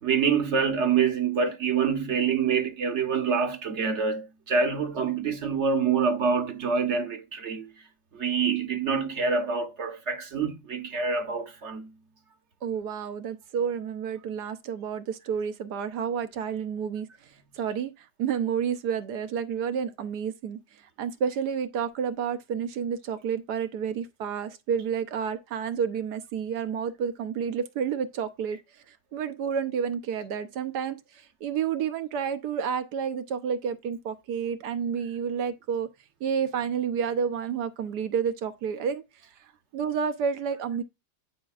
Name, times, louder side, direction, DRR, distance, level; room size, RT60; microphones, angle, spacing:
voice 1, 0.0-7.7 8.1-11.9, right 6 dB, 50° right, 1.1 m, -26 dB
voice 2, 12.6-35.9 36.2-39.0 39.7-40.8, right 7 dB, 75° right, 1.4 m, -30 dB
10.0 x 5.2 x 2.4 m
omnidirectional pair, 1.8 m